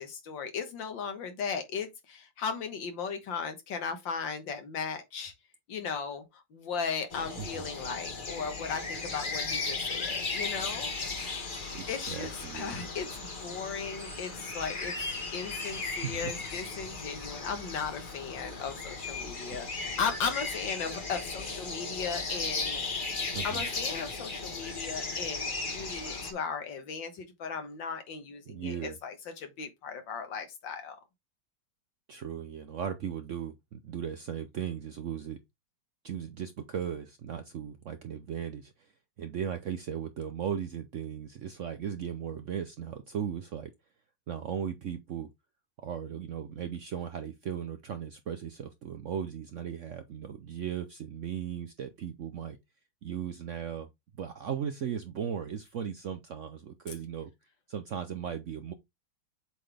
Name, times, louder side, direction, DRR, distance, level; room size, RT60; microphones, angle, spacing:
voice 1, 0.0-5.3 5.7-10.9 11.2-11.4 11.9-14.9 15.3-22.9 23.4-31.0, left 6 dB, 85° left, 2.1 m, -36 dB
sound 1, 7.1-26.3, left 3 dB, 30° left, 1.3 m, -36 dB
voice 2, 11.7-12.9 15.7-16.3 17.2-17.3 19.5-19.6 23.3-23.6 28.5-29.0 32.1-35.4 36.0-38.7 39.2-43.7 44.3-45.3 45.8-52.6 53.0-53.9 54.1-57.3 57.7-58.7, right 8 dB, 65° right, 0.7 m, -37 dB
7.5 x 3.9 x 3.4 m
omnidirectional pair, 2.0 m